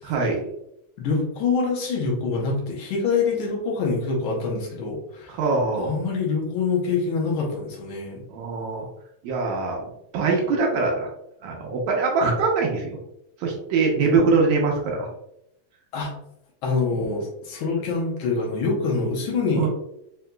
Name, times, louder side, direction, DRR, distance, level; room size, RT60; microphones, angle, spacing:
voice 1, 0.0-0.4 5.3-6.0 8.3-8.9 9.2-11.1 11.4-13.0 13.4-15.1 16.9-17.0 19.6-19.7, right 4 dB, 75° right, 0 dB, 2.0 m, -23 dB
voice 2, 1.0-5.4 5.7-8.2 15.9-16.1 16.6-19.7, left 4 dB, 85° left, -3 dB, 1.1 m, -25 dB
5.2 x 2.8 x 2.2 m, 0.81 s
omnidirectional pair, 3.5 m